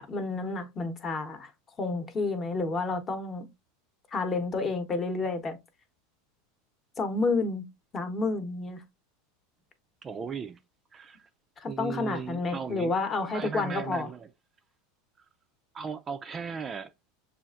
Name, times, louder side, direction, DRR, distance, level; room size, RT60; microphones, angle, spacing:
voice 1, 0.0-1.5 1.8-3.5 4.1-5.6 7.0-7.7 7.9-8.8 11.6-14.1, left 3 dB, 30° left, 0.9 m, -30 dB
voice 2, 10.0-10.6 10.9-11.3 11.7-13.0 13.3-14.3 15.7-16.9, right 6 dB, 25° right, 0.4 m, -37 dB
6.3 x 2.4 x 2.4 m
hypercardioid pair, 105°, 0 cm